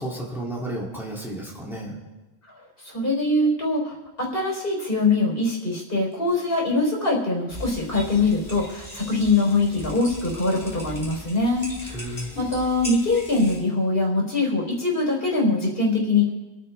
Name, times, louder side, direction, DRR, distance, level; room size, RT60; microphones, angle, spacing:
voice 1, 0.0-2.0 11.9-12.4, right 1 dB, ahead, -4 dB, 2.7 m, -32 dB
voice 2, 2.8-12.1 12.4-16.3, left 2 dB, 60° left, -2 dB, 4.0 m, -23 dB
sound 1, 7.5-13.6, equal, 30° left, 3.9 m, -39 dB
26.5 x 9.4 x 3.4 m, 1.1 s
omnidirectional pair, 1.1 m